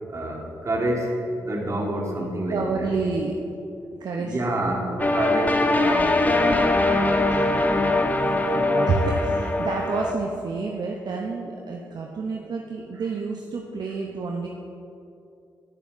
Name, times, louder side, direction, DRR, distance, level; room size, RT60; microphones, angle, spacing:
voice 1, 0.1-2.9 4.2-7.4, right 1 dB, 35° right, -1 dB, 1.3 m, -28 dB
voice 2, 2.5-3.4 4.0-4.3 4.8-5.1 7.2-14.5, right 4 dB, 55° right, 0 dB, 0.5 m, -29 dB
sound 1, 5.0-10.1, left 2 dB, 20° left, 0.6 m, -22 dB
8.3 x 6.7 x 2.5 m, 2.7 s
hypercardioid pair, 40°, 8 cm